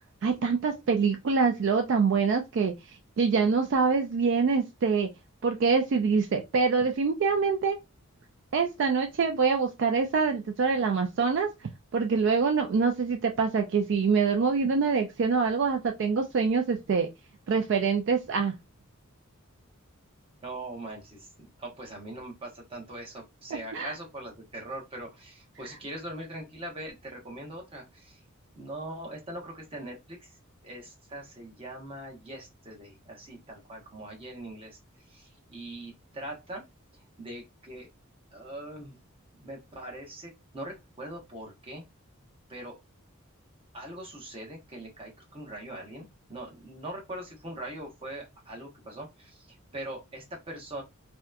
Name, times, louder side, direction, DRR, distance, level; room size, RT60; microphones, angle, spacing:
voice 1, 0.2-2.7 3.2-5.1 5.4-7.8 8.5-11.5 11.9-17.1 17.5-18.5 23.7-23.9, right 5 dB, 55° right, 0.3 m, -25 dB
voice 2, 20.4-28.2 28.5-30.4 30.6-34.8 35.1-36.6 36.9-37.9 38.3-39.0 39.4-41.8 42.5-42.8 43.7-50.8, right 1 dB, 25° right, 0.8 m, -41 dB
2.8 x 2.1 x 2.3 m
head